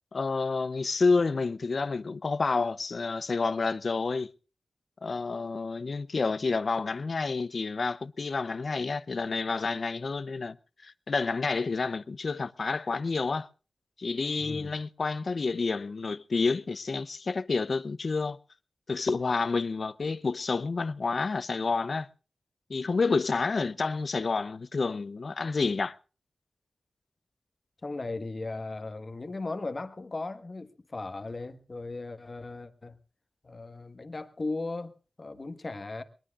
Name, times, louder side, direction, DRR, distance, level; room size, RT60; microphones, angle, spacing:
voice 1, 0.1-4.3 5.0-10.6 10.8-13.5 14.0-18.4 18.9-22.1 22.7-25.9, left 4 dB, 65° left, 0.7 m, -29 dB
voice 2, 14.4-14.7 27.8-33.0 33.4-36.0, left 3 dB, 50° left, 1.4 m, -37 dB
22.0 x 19.5 x 2.5 m
cardioid pair, 45°, 0 cm